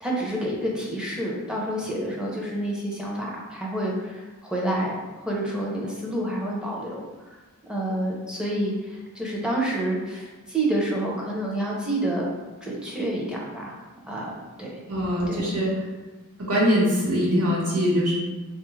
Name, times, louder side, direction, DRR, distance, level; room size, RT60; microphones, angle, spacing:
voice 1, 0.0-4.9 5.2-7.0 7.3-7.4 7.7-12.3 12.6-13.7 14.1-14.3 14.6-14.8 15.3-15.5, right 1 dB, 5° right, -4 dB, 0.6 m, -28 dB
voice 2, 14.9-15.7 16.5-18.1, equal, 75° right, -4 dB, 1.1 m, -22 dB
3.6 x 2.4 x 3.1 m, 1.2 s
head